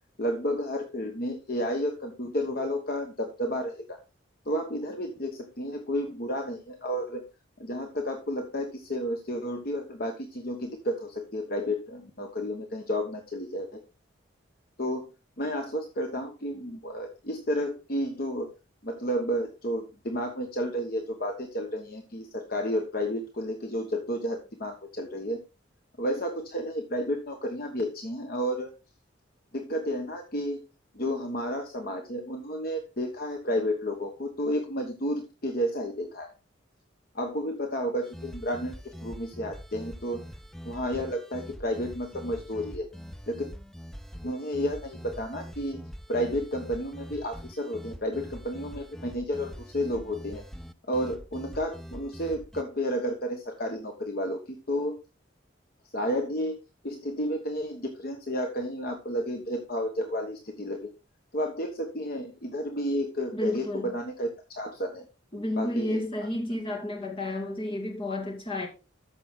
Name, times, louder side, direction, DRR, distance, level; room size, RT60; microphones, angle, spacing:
voice 1, 0.2-4.0 4.4-7.2 7.6-13.8 14.8-15.1 15.4-18.5 18.8-25.4 26.0-28.7 29.5-30.6 30.9-36.3 37.1-40.2 40.6-42.9 43.3-43.5 44.2-45.8 46.1-50.4 50.8-55.0 55.9-60.9 61.3-65.1 65.6-66.3, equal, 50° left, 1.2 m, -31 dB
sound 1, 38.0-52.6, equal, ahead, 0.4 m, -44 dB
voice 2, 63.3-63.9 65.3-68.7, left 1 dB, 25° left, 2.3 m, -31 dB
13.5 x 6.0 x 3.7 m
head